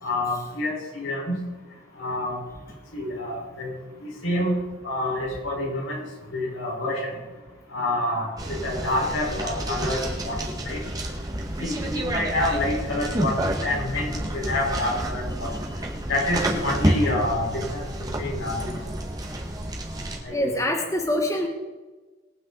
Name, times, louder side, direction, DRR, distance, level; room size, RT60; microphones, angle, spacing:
voice 1, 0.0-1.4 2.0-2.4 2.9-3.7 4.2-4.5 4.8-6.0 6.3-7.1 7.7-10.4 10.6-10.8 11.6-15.5 16.1-17.8 18.2-18.7 20.2-20.5, left 1 dB, 85° left, -2 dB, 5.1 m, -27 dB
sound 1, 8.4-20.2, right 1 dB, 20° right, 1.9 m, -29 dB
voice 2, 20.3-21.5, left 1 dB, 15° left, 3 dB, 1.3 m, -24 dB
21.5 x 9.2 x 4.1 m, 1.2 s
head